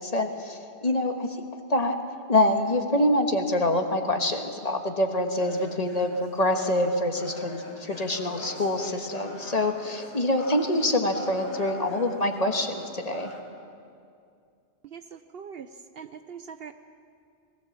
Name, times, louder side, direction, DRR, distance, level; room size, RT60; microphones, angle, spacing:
voice 1, 0.0-1.4 1.7-2.0 2.3-13.3, left 1 dB, 35° left, 4 dB, 1.6 m, -25 dB
sound 1, 5.4-13.4, left 2 dB, 80° left, 2.6 m, -42 dB
voice 2, 14.8-15.7 15.9-16.7, right 7 dB, 65° right, 9 dB, 0.9 m, -42 dB
19.5 x 19.0 x 7.4 m, 2.4 s
omnidirectional pair, 1.1 m